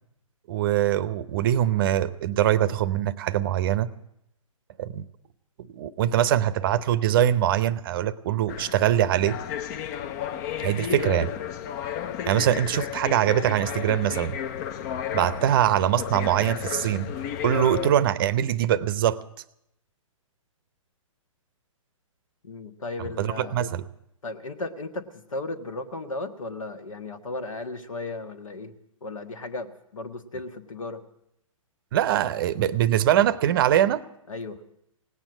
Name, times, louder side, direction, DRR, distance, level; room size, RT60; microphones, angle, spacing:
voice 1, 0.5-3.9 4.8-5.1 5.7-9.4 10.6-11.3 12.3-14.4 15.1-17.1 17.4-19.2 23.2-23.8 31.9-34.0, right 11 dB, 40° right, 16 dB, 0.7 m, -23 dB
sound 1, 8.5-17.9, left 9 dB, 30° left, 0.6 m, -33 dB
voice 2, 22.4-23.6 24.2-28.8 29.0-31.0 34.3-34.6, left 2 dB, 70° left, 8 dB, 1.6 m, -35 dB
18.0 x 9.0 x 8.8 m, 0.81 s
figure-of-eight pair, 125°, 17 cm